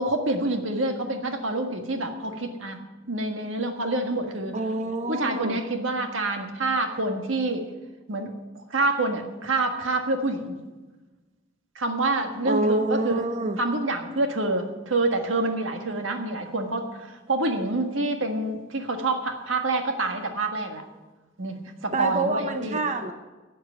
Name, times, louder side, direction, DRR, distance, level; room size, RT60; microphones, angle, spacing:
voice 1, 0.0-4.6 5.1-7.7 8.1-10.6 11.7-13.2 13.6-20.8 21.4-22.8, right 2 dB, 85° right, 4 dB, 1.6 m, -27 dB
voice 2, 4.5-5.6 12.4-13.6 21.9-23.1, right 2 dB, 40° right, 7 dB, 0.8 m, -27 dB
12.5 x 7.9 x 8.0 m, 1.2 s
head